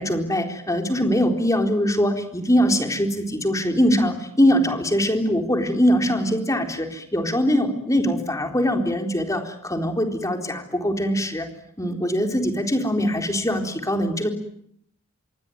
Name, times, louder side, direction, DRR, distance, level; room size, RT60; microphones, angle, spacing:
voice 1, 0.0-11.5 11.8-14.3, equal, 15° left, 4 dB, 4.0 m, -22 dB
27.5 x 23.0 x 9.3 m, 0.70 s
head